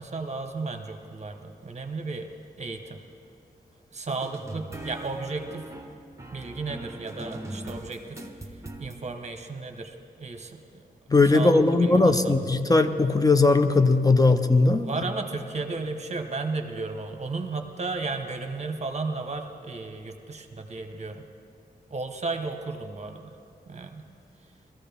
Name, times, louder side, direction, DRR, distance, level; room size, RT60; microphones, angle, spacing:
voice 1, 0.0-2.3 2.6-3.0 3.9-5.7 6.3-8.3 8.8-10.8 11.3-12.4 14.8-21.2 21.9-23.3 23.7-24.0, right 3 dB, 45° right, 5 dB, 1.0 m, -34 dB
sound 1, 4.1-9.0, right 1 dB, 20° right, 1.1 m, -40 dB
voice 2, 11.1-14.9, left 3 dB, 20° left, 8 dB, 0.6 m, -19 dB
20.5 x 14.0 x 3.5 m, 2.4 s
wide cardioid pair, 105°, 16 cm